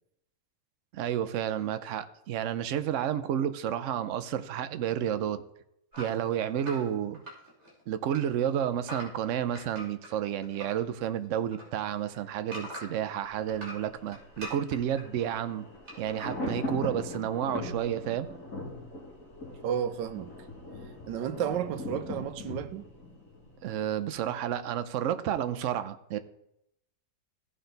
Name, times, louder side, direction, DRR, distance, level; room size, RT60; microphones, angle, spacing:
voice 1, 0.9-5.4 6.0-7.2 7.9-15.7 16.0-18.3 23.6-26.2, right 10 dB, 75° right, 0.7 m, -31 dB
sound 1, 5.9-7.8 8.1-10.8 11.1-13.1 13.5-15.0 15.9-16.4, equal, 40° right, 3.0 m, -43 dB
Thunder, 13.3-24.2 24.5-24.6, left 2 dB, 50° left, 2.6 m, -40 dB
voice 2, 19.6-20.3 21.1-22.9, right 9 dB, 90° right, 1.3 m, -32 dB
15.0 x 5.0 x 3.9 m
omnidirectional pair, 1.9 m